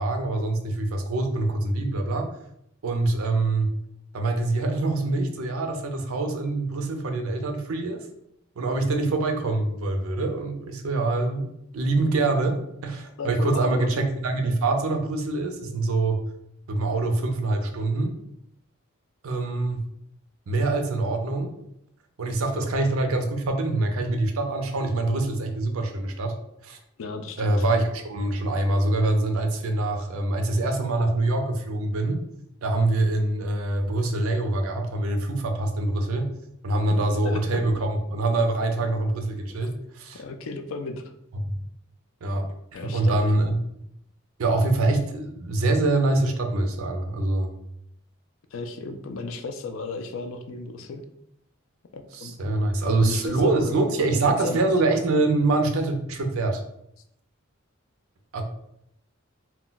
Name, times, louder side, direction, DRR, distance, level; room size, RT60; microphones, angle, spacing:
voice 1, 0.0-2.3 2.8-3.7 4.1-8.0 8.6-11.5 11.7-16.2 16.7-18.1 19.2-19.8 20.5-21.5 22.2-26.3 26.6-26.8 27.4-32.2 32.6-36.3 36.6-40.2 41.5-41.6 42.2-42.4 42.9-43.6 44.4-47.5 52.2-56.6 58.3-58.4, right 2 dB, 90° right, 5 dB, 0.5 m, -24 dB
voice 2, 13.2-13.9 22.6-22.7 27.0-27.6 37.2-37.8 40.1-41.1 42.7-43.2 48.5-51.0 51.9-52.4 52.8-54.7, left 3 dB, 70° left, 7 dB, 0.4 m, -35 dB
2.2 x 2.1 x 3.8 m, 0.77 s
head